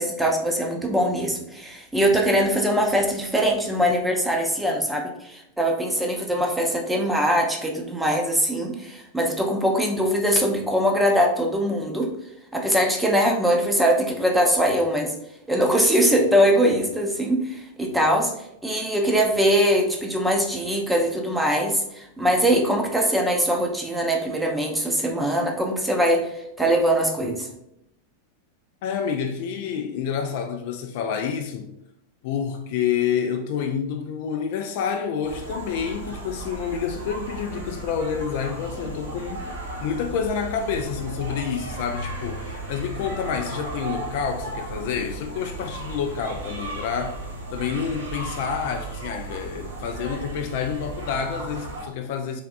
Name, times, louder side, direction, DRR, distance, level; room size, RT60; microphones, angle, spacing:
voice 1, 0.0-12.1 12.5-15.1 15.5-27.5, equal, 5° right, 0.6 m, -22 dB
voice 2, 28.8-31.7 32.2-39.5 39.8-52.4, left 7 dB, 50° left, 0.3 m, -28 dB
sound 1, 35.2-51.8, right 2 dB, 70° right, 0.9 m, -35 dB
3.4 x 3.4 x 2.3 m
figure-of-eight pair, 90°, 0 cm